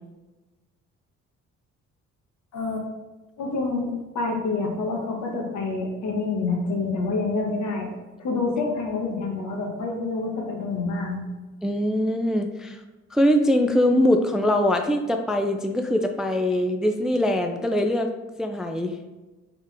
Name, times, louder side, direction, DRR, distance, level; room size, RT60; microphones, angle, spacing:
voice 1, 2.5-2.9 3.4-7.9 8.2-11.2, left 3 dB, 70° left, 1 dB, 1.2 m, -27 dB
voice 2, 11.6-12.8 13.1-18.1 18.4-19.0, left 1 dB, ahead, 4 dB, 0.3 m, -22 dB
4.4 x 3.6 x 3.3 m, 1.2 s
cardioid pair, 90°, 30 cm